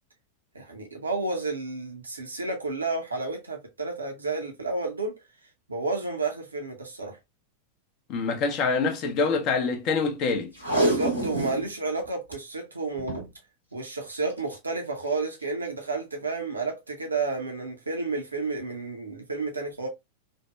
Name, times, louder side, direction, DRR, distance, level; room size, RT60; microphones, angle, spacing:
voice 1, 0.5-5.2 5.7-7.2 10.7-13.2 13.7-19.9, right 3 dB, 80° right, 0.7 m, -31 dB
voice 2, 8.1-10.5, left 4 dB, 40° left, 0.7 m, -25 dB
Packing tape duct tape, 10.5-11.7 12.0-12.1 12.3-12.4 13.0-13.3 14.3-14.5 15.1-15.2, right 1 dB, 85° left, 1.1 m, -26 dB
3.4 x 2.1 x 2.2 m
figure-of-eight pair, 90°, 0 cm